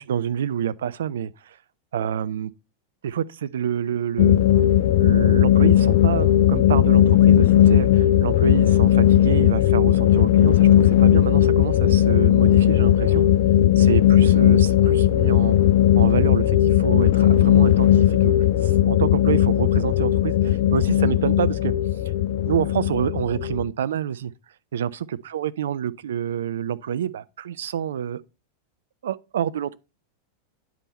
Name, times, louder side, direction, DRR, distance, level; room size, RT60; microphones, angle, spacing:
voice 1, 0.0-1.6 1.9-2.5 3.0-4.4 5.0-13.2 13.8-15.6 16.0-18.3 18.6-21.7 22.4-24.3 24.7-28.2 29.0-29.8, right 9 dB, 60° right, 0.3 m, -27 dB
sound 1, 4.2-23.7, left 11 dB, 55° left, 0.4 m, -17 dB
9.6 x 3.5 x 4.1 m
figure-of-eight pair, 90°, 0 cm